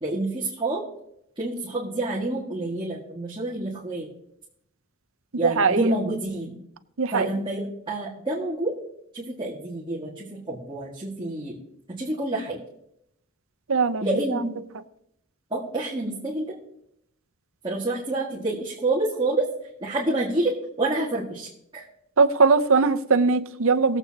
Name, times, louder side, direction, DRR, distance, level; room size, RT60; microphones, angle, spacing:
voice 1, 0.0-0.8 1.4-4.1 5.4-6.6 7.1-8.7 9.1-11.6 11.9-12.6 14.0-14.5 15.5-16.6 17.6-19.4 19.8-21.8, right 2 dB, 20° right, -6 dB, 1.8 m, -28 dB
voice 2, 5.4-5.9 7.0-7.3 13.7-14.1 14.3-14.4 22.2-24.0, right 4 dB, 65° right, 10 dB, 0.7 m, -20 dB
20.5 x 8.1 x 2.9 m, 0.77 s
head